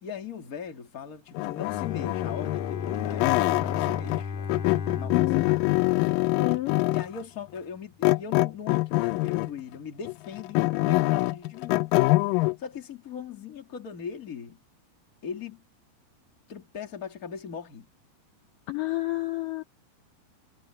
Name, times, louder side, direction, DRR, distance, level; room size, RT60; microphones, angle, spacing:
voice 1, 0.0-4.7 4.9-5.9 6.8-11.9 12.6-14.6 15.2-15.7 16.5-17.9, left 7 dB, 30° left, 2.1 m, -39 dB
sound 1, 1.4-4.2 4.5-7.2 8.0-9.6 10.1-12.6, left 21 dB, 90° left, 1.9 m, -25 dB
Bowed string instrument, 1.6-6.9, left 5 dB, 55° left, 3.6 m, -35 dB
voice 2, 5.1-5.5 6.4-6.8 18.7-19.6, left 19 dB, 70° left, 2.2 m, -29 dB
omnidirectional pair, 4.5 m